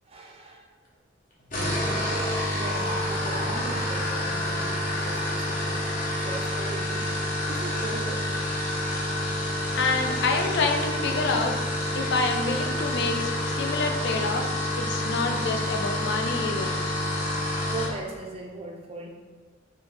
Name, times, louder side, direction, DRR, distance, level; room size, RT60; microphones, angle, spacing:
voice 1, 0.1-0.6 2.5-5.8 6.2-7.1 7.5-8.3 17.7-19.1, right 2 dB, 30° right, 1 dB, 0.5 m, -38 dB
sound 1, 1.4-18.0, left 1 dB, 45° left, 0.8 m, -28 dB
voice 2, 9.8-11.5 11.9-16.8, left 3 dB, 60° left, 3 dB, 0.4 m, -27 dB
3.4 x 2.5 x 3.6 m, 1.4 s
head